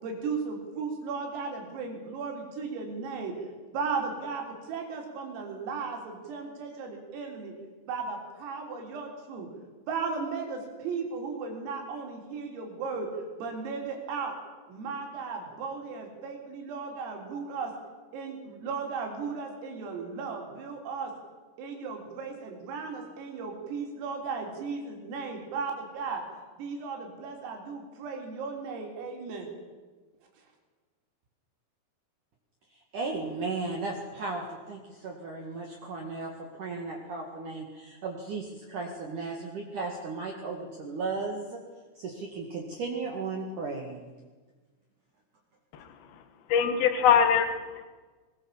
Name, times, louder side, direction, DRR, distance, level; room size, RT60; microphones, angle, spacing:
voice 1, 0.0-3.3 3.7-7.5 7.9-9.5 9.9-13.1 13.4-14.4 14.7-17.7 18.1-21.1 21.6-26.2 26.5-29.5, right 5 dB, 90° right, 2 dB, 6.4 m, -36 dB
voice 2, 32.9-36.3 36.6-41.6 42.0-44.1, right 3 dB, 50° right, 0 dB, 2.9 m, -35 dB
voice 3, 45.7-46.2 46.5-47.9, left 7 dB, 60° left, 9 dB, 2.9 m, -24 dB
22.0 x 21.5 x 7.5 m, 1.4 s
omnidirectional pair, 5.9 m